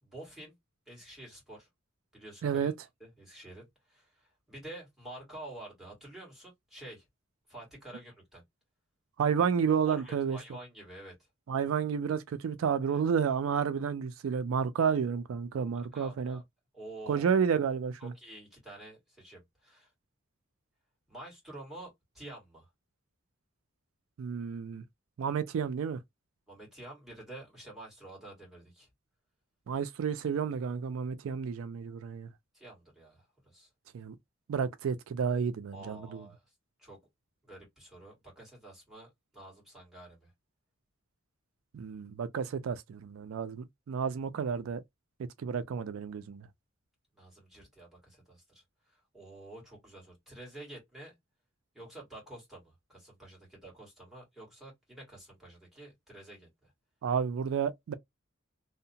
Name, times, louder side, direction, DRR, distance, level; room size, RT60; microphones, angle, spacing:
voice 1, 0.0-0.5 0.9-1.7 2.1-2.7 3.0-7.0 7.5-8.4 9.8-11.3 12.9-13.0 15.7-16.4 16.7-17.3 18.0-19.9 21.1-22.7 26.5-28.9 32.5-33.7 35.7-36.4 36.8-37.0 37.4-40.3 47.1-51.1 51.7-56.7, right 1 dB, ahead, 1.6 m, -49 dB
voice 2, 2.4-2.7 9.2-10.4 11.5-16.4 17.1-18.1 24.2-24.8 25.2-26.0 29.7-32.3 33.9-34.2 34.5-36.2 41.7-44.8 45.4-46.5 57.0-57.9, right 7 dB, 80° right, 0.3 m, -31 dB
2.7 x 2.1 x 2.6 m
head